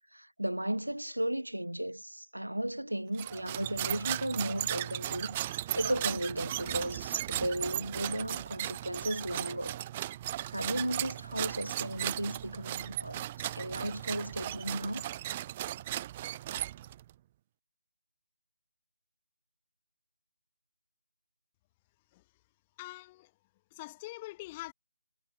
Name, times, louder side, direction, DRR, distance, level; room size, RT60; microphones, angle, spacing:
voice 1, 0.1-9.8 10.5-13.3 13.6-15.0, right 1 dB, 80° right, 0.4 m, -35 dB
sound 1, 3.1-17.1, right 13 dB, 20° right, 0.8 m, -36 dB
voice 2, 22.8-23.3 23.7-24.7, left 19 dB, 15° left, 2.7 m, -44 dB
figure-of-eight pair, 155°, 0 cm